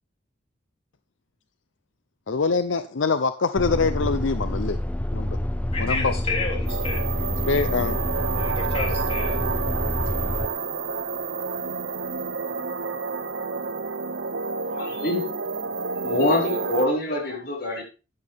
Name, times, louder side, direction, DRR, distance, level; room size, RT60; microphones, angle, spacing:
voice 1, 2.3-4.8 5.1-5.4 5.8-6.1 7.5-8.0, left 4 dB, 80° left, 11 dB, 0.6 m, -24 dB
sound 1, 3.6-10.5, left 1 dB, 10° left, 0.5 m, -27 dB
voice 2, 5.7-7.0 8.3-9.4, left 3 dB, 30° left, 0 dB, 3.2 m, -30 dB
sound 2, 6.7-16.9, right 5 dB, 65° right, 0.8 m, -30 dB
voice 3, 14.6-15.3 16.0-17.8, left 1 dB, 55° left, -2 dB, 5.4 m, -25 dB
13.5 x 9.9 x 3.5 m, 0.32 s
head